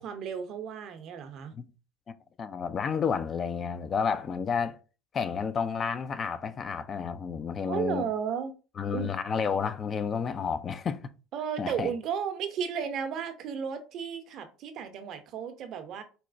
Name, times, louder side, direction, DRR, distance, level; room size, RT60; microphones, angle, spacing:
voice 1, 0.0-1.5 7.7-8.5 8.9-9.1 11.3-16.0, right 7 dB, 55° right, 0.6 m, -34 dB
voice 2, 2.4-4.8 5.1-8.1 8.8-11.1 11.6-11.9, left 6 dB, 40° left, 0.3 m, -31 dB
4.0 x 2.1 x 2.5 m
hypercardioid pair, 70°, 0 cm